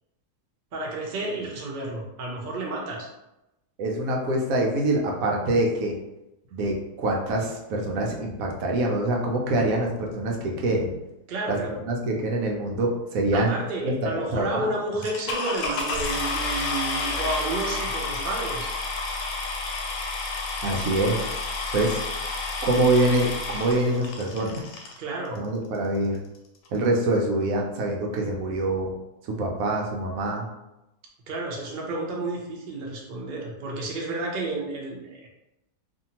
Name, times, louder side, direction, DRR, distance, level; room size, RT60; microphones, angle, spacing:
voice 1, 0.7-3.1 11.3-11.8 13.3-18.7 25.0-25.4 31.3-35.3, right 2 dB, 85° right, -2 dB, 0.4 m, -31 dB
voice 2, 3.8-5.9 6.5-10.9 11.5-13.6 13.8-14.7 20.6-21.2 21.7-22.0 22.6-24.6 25.4-26.2 26.7-28.9 29.3-30.5, right 2 dB, 70° right, 0 dB, 0.9 m, -25 dB
sound 1, 15.0-25.0 25.7-25.8 26.3-26.4 26.6-27.0, left 3 dB, 75° left, 1.1 m, -30 dB
2.6 x 2.5 x 2.8 m, 0.93 s
omnidirectional pair, 1.7 m